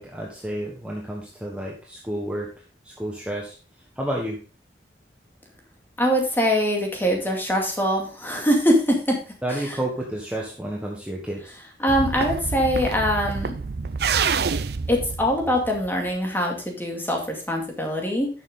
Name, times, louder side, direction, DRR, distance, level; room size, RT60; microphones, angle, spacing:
voice 1, 0.0-2.5 2.8-3.6 4.0-4.4 9.4-11.6, right 1 dB, 5° right, -2 dB, 1.3 m, -30 dB
voice 2, 6.0-9.2 9.5-9.8 11.8-13.5 14.9-18.3, equal, 10° left, 0 dB, 2.3 m, -23 dB
sound 1, 11.9-16.1, right 5 dB, 60° right, 0.6 m, -27 dB
10.5 x 6.9 x 3.8 m, 0.37 s
head